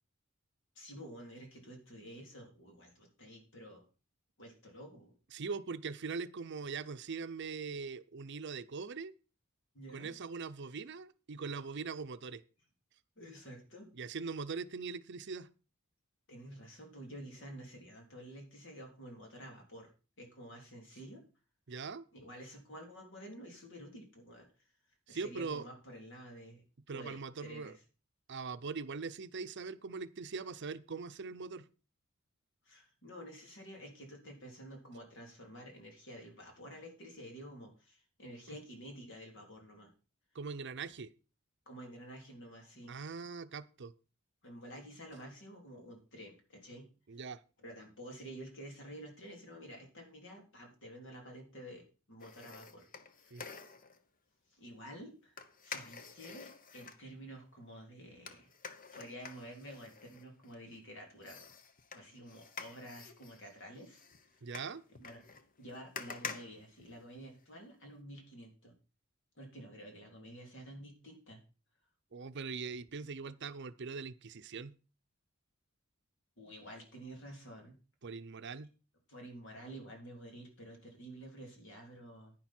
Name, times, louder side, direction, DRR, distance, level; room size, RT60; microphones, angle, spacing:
voice 1, 0.7-3.8 4.4-5.2 9.7-10.1 13.2-13.9 16.3-19.9 20.2-21.2 22.1-24.5 25.1-26.6 26.9-27.8 32.6-39.9 41.6-42.9 44.4-46.9 47.6-52.9 53.1-53.4 54.5-55.4 55.6-58.5 58.9-61.5 61.9-64.4 64.9-68.7 69.3-71.4 76.4-77.8 79.1-82.3, equal, 60° left, 2 dB, 3.3 m, -50 dB
voice 2, 5.3-9.1 9.9-12.4 13.9-15.5 21.7-22.1 25.1-25.7 26.9-27.7 28.3-31.7 40.3-41.1 42.9-43.9 47.1-47.4 53.3-53.4 64.4-64.8 72.1-74.7 78.0-78.7, right 5 dB, 55° right, 12 dB, 0.6 m, -41 dB
sound 1, 52.2-54.0 55.4-57.0 58.3-60.8 61.2-67.4 67.8-67.9, left 5 dB, 40° left, 0.9 m, -48 dB
10.5 x 10.0 x 4.4 m, 0.34 s
head